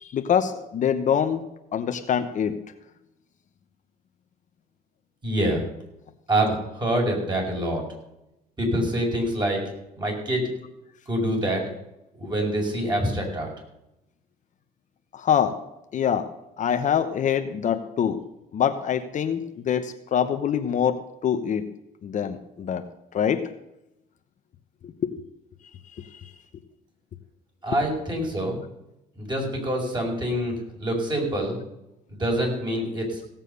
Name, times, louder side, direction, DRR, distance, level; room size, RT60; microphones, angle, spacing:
voice 1, 0.0-1.4 1.7-2.6 15.1-15.6 15.9-16.3 16.6-18.2 18.5-21.7 22.0-22.8 23.1-23.4 24.8-24.9 26.0-26.2, left 8 dB, 45° left, 7 dB, 1.0 m, -25 dB
voice 2, 5.2-5.6 6.3-7.8 8.6-9.6 10.0-10.5 11.1-11.6 12.2-13.5 27.6-28.6 29.2-31.6 32.1-33.2, right 1 dB, 25° right, 0 dB, 5.1 m, -25 dB
17.0 x 7.4 x 6.8 m, 0.89 s
cardioid pair, 110°, 17 cm